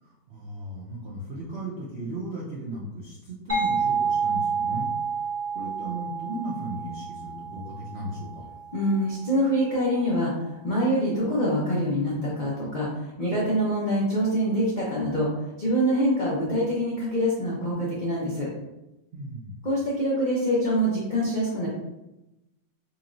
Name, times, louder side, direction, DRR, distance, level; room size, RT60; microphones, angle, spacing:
voice 1, 0.0-4.9 5.5-8.5 19.1-19.7, right 1 dB, 70° right, -5 dB, 0.6 m, -36 dB
sound 1, 3.5-9.0, right 5 dB, 15° right, 0.5 m, -29 dB
voice 2, 8.7-18.5 19.6-21.7, equal, 65° left, -6 dB, 0.4 m, -25 dB
4.1 x 3.0 x 2.5 m, 0.94 s
omnidirectional pair, 2.0 m